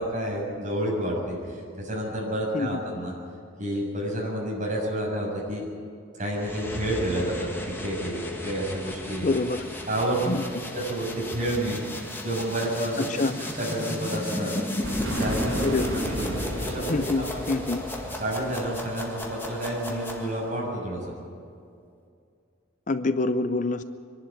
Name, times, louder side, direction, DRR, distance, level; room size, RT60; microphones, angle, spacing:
voice 1, 0.0-3.1 3.6-5.6 6.2-9.3 9.9-10.3 10.7-11.8 12.2-13.1 13.6-14.5 15.2-17.2 18.1-21.1, right 1 dB, 40° right, -3 dB, 7.0 m, -29 dB
sound 1, 6.3-20.6, left 1 dB, 10° left, 1.8 m, -34 dB
voice 2, 9.2-9.6 10.3-10.4 13.1-13.4 15.6-16.0 16.9-17.8 22.9-23.8, left 3 dB, 40° left, 11 dB, 0.6 m, -26 dB
sound 2, 14.8-19.5, right 1 dB, 85° right, 4.7 m, -34 dB
24.0 x 11.5 x 9.8 m, 2.4 s
head